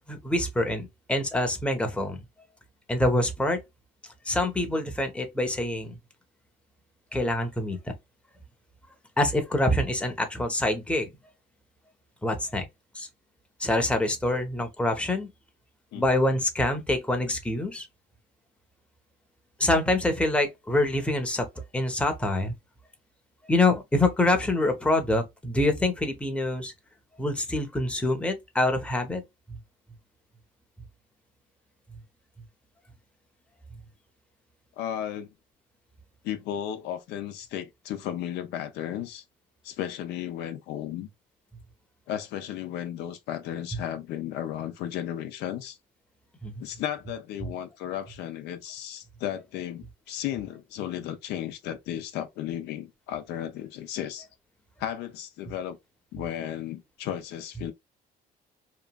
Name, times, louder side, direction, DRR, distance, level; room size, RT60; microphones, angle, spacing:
voice 1, 0.1-2.2 2.9-3.6 4.3-6.0 7.1-7.8 9.2-11.1 12.2-12.7 12.9-13.1 13.6-15.3 15.9-17.9 19.6-21.5 21.7-22.5 23.5-26.7 27.2-29.2 29.5-29.6 46.4-46.6, left 1 dB, 5° left, 0.7 m, -25 dB
voice 2, 34.8-35.3 36.2-39.2 39.6-41.1 42.1-45.8 46.6-54.3 54.8-55.8 56.1-57.7, left 11 dB, 80° left, 0.5 m, -34 dB
2.9 x 2.4 x 2.2 m
cardioid pair, 110°, 17 cm